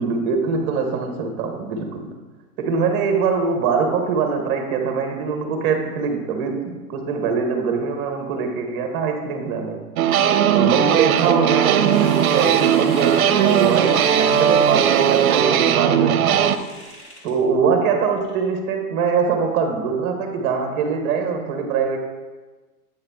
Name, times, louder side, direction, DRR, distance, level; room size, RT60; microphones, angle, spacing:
voice 1, 0.0-2.1 2.6-9.8 10.5-16.4 17.2-22.0, right 5 dB, 20° right, 5 dB, 0.9 m, -23 dB
sound 1, 10.0-16.6, right 9 dB, 65° right, 0.6 m, -18 dB
sound 2, 11.2-15.4 16.3-17.3 18.2-18.4, equal, 15° left, 1.1 m, -37 dB
8.5 x 5.8 x 3.4 m, 1.2 s
hypercardioid pair, 150°, 46 cm